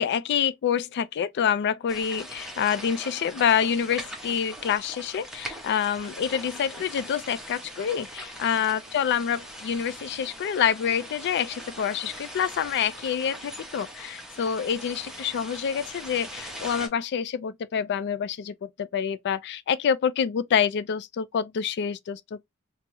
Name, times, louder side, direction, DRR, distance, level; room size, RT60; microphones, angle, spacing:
voice 1, 0.0-22.4, left 8 dB, 50° left, 0.3 m, -27 dB
sound 1, 1.9-16.9, equal, ahead, 0.7 m, -41 dB
3.4 x 2.0 x 2.9 m
head